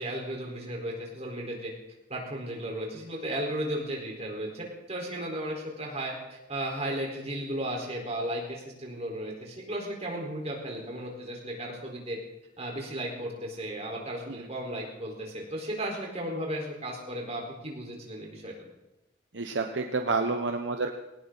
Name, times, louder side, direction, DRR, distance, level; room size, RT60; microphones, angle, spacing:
voice 1, 0.0-1.7 2.1-12.2 12.6-18.5, right 1 dB, 35° right, -1 dB, 4.3 m, -35 dB
voice 2, 19.3-20.9, right 3 dB, 70° right, 5 dB, 0.9 m, -29 dB
19.5 x 18.5 x 4.0 m, 0.95 s
head